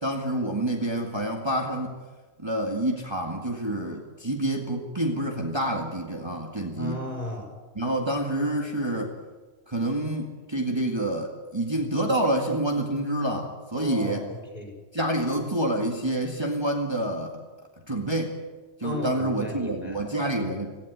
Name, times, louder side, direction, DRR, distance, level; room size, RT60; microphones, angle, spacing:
voice 1, 0.0-2.0 2.4-7.0 7.8-9.1 9.7-14.3 14.9-17.4 17.9-18.4 18.8-20.8, right 1 dB, 20° right, 1 dB, 2.0 m, -28 dB
voice 2, 6.8-7.5 13.7-14.8 18.8-20.0, left 1 dB, 30° left, 2 dB, 5.0 m, -35 dB
18.5 x 15.5 x 9.4 m, 1.3 s
omnidirectional pair, 1.3 m